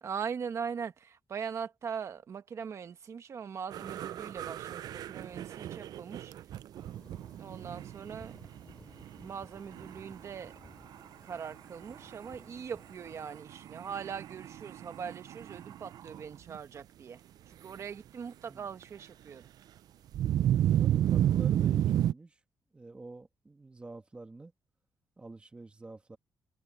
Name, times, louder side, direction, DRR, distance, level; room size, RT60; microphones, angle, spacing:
voice 1, 0.0-6.3 7.4-8.4 9.2-10.5 11.2-17.2 17.5-19.5, right 7 dB, 40° right, 1.4 m, -41 dB
sound 1, 3.7-8.7 9.0-9.3 9.7-10.5 10.9-11.0 11.3-11.5 11.9-12.3 12.9-16.2 16.5-16.6 20.1-22.1, right 11 dB, 60° right, 0.4 m, -31 dB
sound 2, 6.8-13.4, left 2 dB, 15° left, 4.1 m, -58 dB
voice 2, 20.8-22.4 22.7-24.5 25.2-26.2, right 3 dB, 15° right, 1.6 m, -47 dB
cardioid pair, 160°, 8 cm